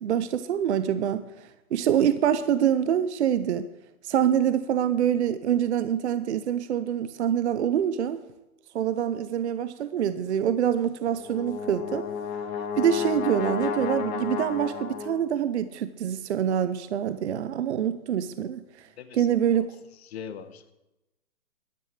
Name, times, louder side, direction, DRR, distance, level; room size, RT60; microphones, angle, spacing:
voice 1, 0.0-1.3 1.7-3.7 4.0-8.2 8.7-12.1 12.8-18.6 19.1-19.7, right 9 dB, 50° right, 12 dB, 0.8 m, -25 dB
Brass instrument, 11.1-15.3, left 6 dB, 20° left, 1.4 m, -32 dB
voice 2, 19.0-19.7 20.1-20.7, left 7 dB, 45° left, 10 dB, 1.4 m, -41 dB
12.5 x 11.5 x 6.5 m, 0.97 s
hypercardioid pair, 150°, 44 cm